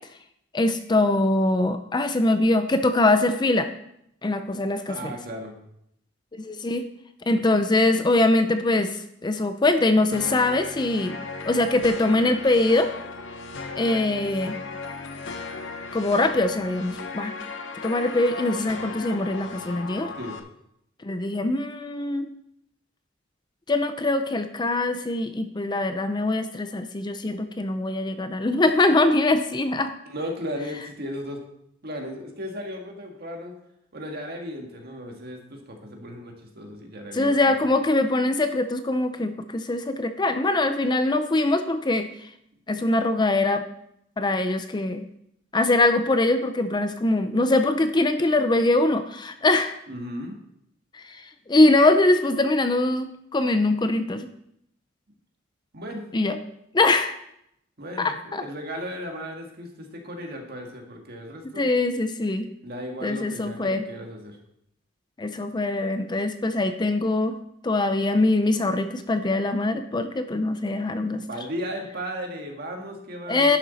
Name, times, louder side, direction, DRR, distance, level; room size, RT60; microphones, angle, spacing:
voice 1, 0.5-3.7 4.2-5.1 6.3-6.9 7.3-11.2 11.5-12.9 13.8-14.6 15.9-17.3 17.8-20.1 21.0-22.3 23.7-29.9 37.1-42.1 42.7-43.6 44.2-45.1 45.5-49.7 50.9-54.3 56.1-56.4 56.7-57.2 58.0-58.4 61.6-62.5 63.0-63.9 65.2-67.4 67.6-71.2 73.3-73.6, left 2 dB, 20° left, 9 dB, 0.5 m, -23 dB
voice 2, 4.9-5.6 20.2-20.4 30.1-31.4 31.8-33.5 33.9-37.5 49.9-50.4 55.7-56.0 57.8-61.7 62.6-64.4 71.1-73.6, equal, 55° right, 2 dB, 1.8 m, -35 dB
sound 1, 10.1-20.4, left 4 dB, 65° left, 0.9 m, -36 dB
11.0 x 7.1 x 4.1 m, 0.76 s
head